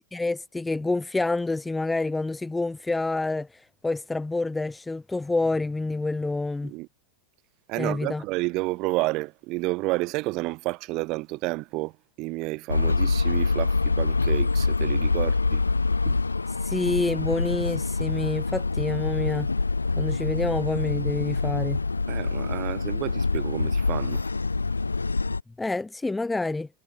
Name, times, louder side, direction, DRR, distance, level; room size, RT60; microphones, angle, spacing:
voice 1, 0.1-3.5 3.8-6.7 7.8-8.2 16.6-19.5 20.0-21.8 25.6-26.7, left 2 dB, 10° left, 2.2 m, -27 dB
voice 2, 7.7-11.9 12.2-15.6 16.1-16.2 22.1-24.2, right 22 dB, 40° right, 5.4 m, -30 dB
sound 1, 12.7-25.4, left 3 dB, 80° left, 0.7 m, -25 dB
figure-of-eight pair, 90°, 0 cm